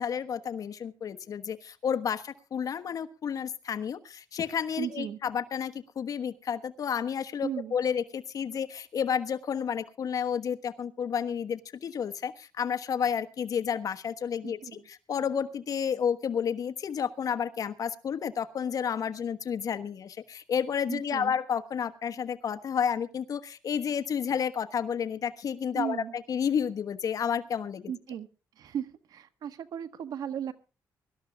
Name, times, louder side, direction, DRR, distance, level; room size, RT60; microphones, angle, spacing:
voice 1, 0.0-14.6 14.9-27.9, left 7 dB, 65° left, 10 dB, 1.3 m, -31 dB
voice 2, 4.8-5.2 7.4-7.7 14.4-14.8 20.9-21.4 25.7-26.1 27.9-28.3 28.6-30.5, right 9 dB, 80° right, 11 dB, 1.5 m, -36 dB
23.5 x 13.0 x 2.4 m, 0.34 s
cardioid pair, 80°, 6 cm